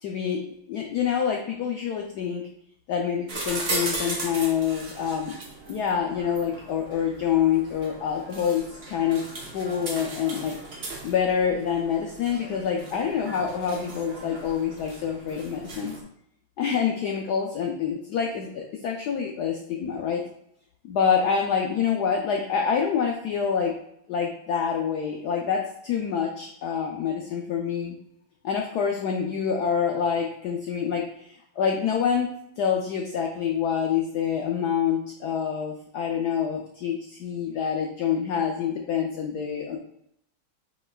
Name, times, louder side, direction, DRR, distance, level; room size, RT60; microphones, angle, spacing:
voice 1, 0.0-0.4 0.7-2.4 2.9-5.4 5.7-9.2 9.5-15.9 16.6-20.2 20.8-23.7 24.1-28.0 28.4-32.3 32.6-39.8, left 7 dB, 90° left, 1 dB, 0.8 m, -26 dB
sound 1, 3.3-16.0, right 2 dB, 55° right, 0.6 m, -37 dB
7.7 x 3.1 x 2.2 m, 0.73 s
omnidirectional pair, 2.3 m